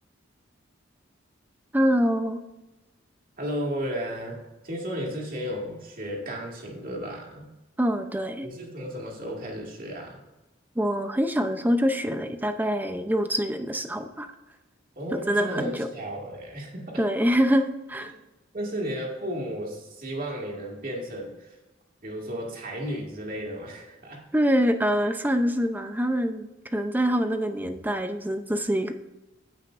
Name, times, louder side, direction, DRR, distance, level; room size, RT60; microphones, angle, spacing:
voice 1, 1.7-2.4 7.8-8.5 10.8-14.3 15.1-15.9 17.0-18.1 24.3-28.9, equal, 10° right, 7 dB, 0.6 m, -25 dB
voice 2, 3.4-4.4 4.6-7.5 8.4-10.2 15.0-17.0 18.0-18.2 18.5-21.5 22.0-24.2, equal, 45° right, -2 dB, 2.2 m, -34 dB
15.5 x 5.7 x 2.5 m, 1.0 s
head